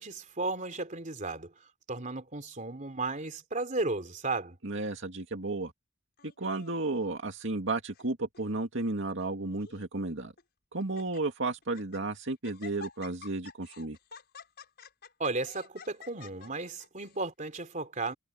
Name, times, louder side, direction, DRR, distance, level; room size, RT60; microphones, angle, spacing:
voice 1, 0.0-1.5 1.9-4.6 15.2-18.1, right 3 dB, 40° right, 3.2 m, -34 dB
voice 2, 4.6-5.7 6.4-10.3 10.7-14.0, right 2 dB, 65° right, 2.3 m, -33 dB
Laughter, 6.2-7.0 7.7-8.1 8.3-8.4 9.2-9.8 10.4-10.5 10.8-11.2 11.6-12.0 12.4-17.2, left 5 dB, 55° left, 6.2 m, -50 dB
head